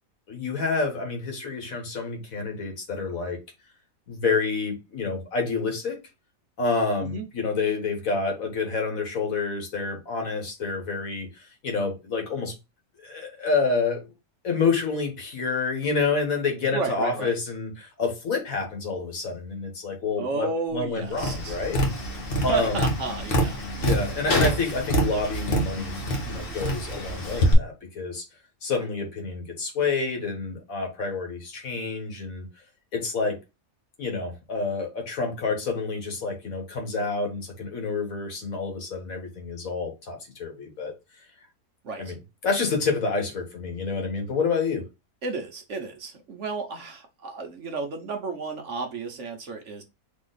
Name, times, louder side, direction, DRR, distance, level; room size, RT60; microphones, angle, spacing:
voice 1, 0.3-3.4 4.1-6.0 6.6-12.5 13.0-14.1 14.4-21.8 22.4-22.9 23.8-26.0 26.2-28.2 28.6-32.4 32.9-33.4 34.0-40.9 42.0-42.1 42.4-44.9, left 4 dB, 65° left, 1.6 m, -28 dB
voice 2, 16.7-17.4 20.2-21.6 22.5-23.6 41.8-42.1 45.2-49.8, right 4 dB, 55° right, 1.0 m, -32 dB
Tap, 21.1-27.5, equal, 40° left, 1.2 m, -26 dB
4.1 x 2.9 x 3.9 m
omnidirectional pair, 1.6 m